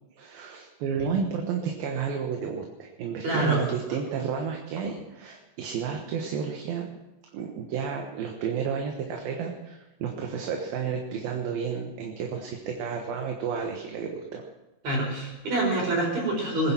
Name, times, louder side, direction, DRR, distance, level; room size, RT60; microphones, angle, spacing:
voice 1, 0.2-6.9 7.3-14.4, right 6 dB, 65° right, 2 dB, 2.9 m, -31 dB
voice 2, 3.2-3.6 14.8-16.7, right 2 dB, 45° right, 0 dB, 5.9 m, -26 dB
22.5 x 10.5 x 6.0 m, 1.0 s
omnidirectional pair, 4.8 m